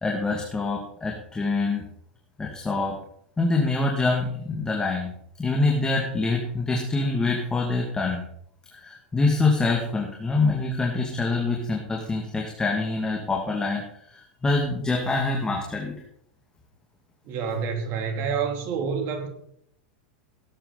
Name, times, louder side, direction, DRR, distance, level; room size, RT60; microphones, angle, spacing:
voice 1, 0.0-1.8 2.4-3.0 3.4-5.1 5.4-8.2 8.7-13.8 14.1-15.9, left 3 dB, 15° left, 0 dB, 2.3 m, -25 dB
voice 2, 17.2-19.3, right 6 dB, 45° right, 5 dB, 2.9 m, -28 dB
17.5 x 9.0 x 4.1 m, 0.71 s
hypercardioid pair, 105°, 5 cm